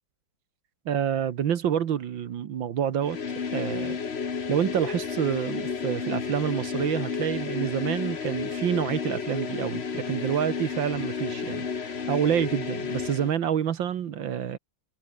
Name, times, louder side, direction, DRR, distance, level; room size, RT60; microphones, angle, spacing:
voice 1, 0.9-3.2 3.5-4.0 4.5-14.6, right 9 dB, 75° right, 2.0 m, -28 dB
sound 1, 3.0-13.3, left 6 dB, 35° left, 1.4 m, -32 dB
omnidirectional pair, 2.1 m